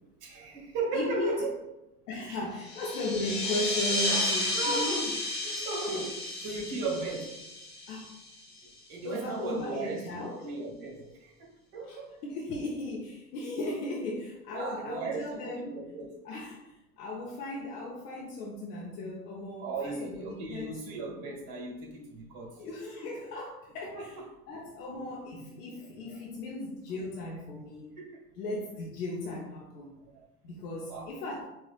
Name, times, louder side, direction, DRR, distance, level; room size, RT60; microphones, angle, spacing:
voice 1, 0.2-1.4 2.3-2.4 4.5-5.1 5.4-6.2 6.4-7.4 8.9-12.1 14.5-16.1 19.6-22.6 23.9-24.1 26.1-26.2 28.0-28.2 30.0-30.2 30.9-31.1, right 3 dB, 50° right, -2 dB, 1.4 m, -36 dB
voice 2, 0.9-1.5 2.1-5.1 5.5-5.6 5.9-6.0 7.9-8.1 9.0-10.5 11.8-15.9 16.2-20.8 22.6-24.1 24.5-27.9 28.4-30.0 30.4-31.4, left 1 dB, 80° left, -3 dB, 0.8 m, -36 dB
sound 1, 2.6-8.7, left 2 dB, 20° left, 1.1 m, -32 dB
4.3 x 2.4 x 2.3 m, 0.93 s
hypercardioid pair, 80°, 46 cm